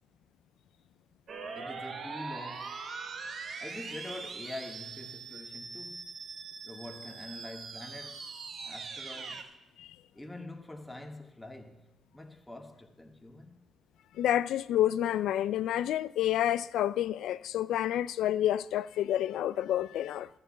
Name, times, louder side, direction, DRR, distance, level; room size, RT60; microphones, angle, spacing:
sound 1, 1.3-9.4, right 4 dB, 50° right, 1.1 m, -42 dB
voice 1, 1.5-3.0 3.6-6.1 6.6-8.3 8.7-9.5 10.1-13.7, left 1 dB, 10° left, 1.1 m, -45 dB
voice 2, 14.1-20.3, left 12 dB, 80° left, 0.3 m, -29 dB
12.5 x 6.0 x 8.3 m
cardioid pair, 90°, 0 cm